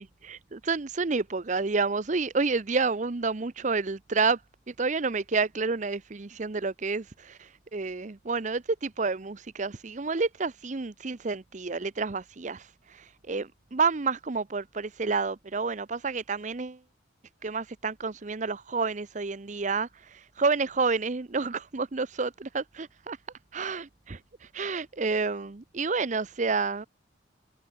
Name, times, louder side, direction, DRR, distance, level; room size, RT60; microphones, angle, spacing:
voice 1, 0.0-4.4 4.7-16.8 17.4-23.2 23.5-24.2 24.5-26.9, right 4 dB, 40° right, 0.7 m, -29 dB
head